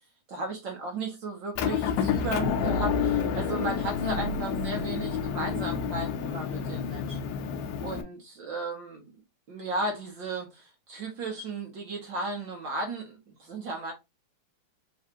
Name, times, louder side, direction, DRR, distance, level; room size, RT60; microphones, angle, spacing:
voice 1, 0.3-7.3 7.8-9.0 9.5-13.9, right 2 dB, 70° right, 1.1 m, -35 dB
Motor vehicle (road) / Engine, 1.6-8.0, left 6 dB, 75° left, 1.9 m, -29 dB
4.7 x 3.1 x 2.9 m
omnidirectional pair, 3.6 m